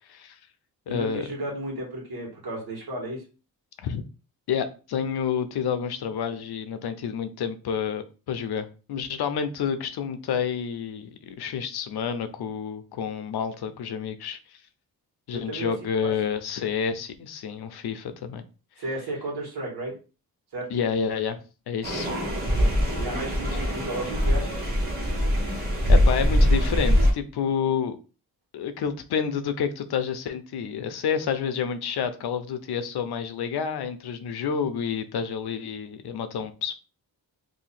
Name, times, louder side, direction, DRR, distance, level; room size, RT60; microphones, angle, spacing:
voice 1, 0.1-0.4 0.9-1.3 3.8-4.0 4.5-14.6 15.3-18.4 20.7-22.1 23.5-23.6 25.9-28.0 28.5-36.7, left 7 dB, 85° left, 9 dB, 0.6 m, -29 dB
voice 2, 0.9-3.2 15.3-15.7 16.0-16.1 18.8-19.9 20.5-20.7 23.0-24.6, right 1 dB, 90° right, -2 dB, 1.6 m, -33 dB
sound 1, 21.8-27.1, equal, 25° right, 1.2 m, -22 dB
2.8 x 2.6 x 4.2 m, 0.34 s
wide cardioid pair, 150°, 37 cm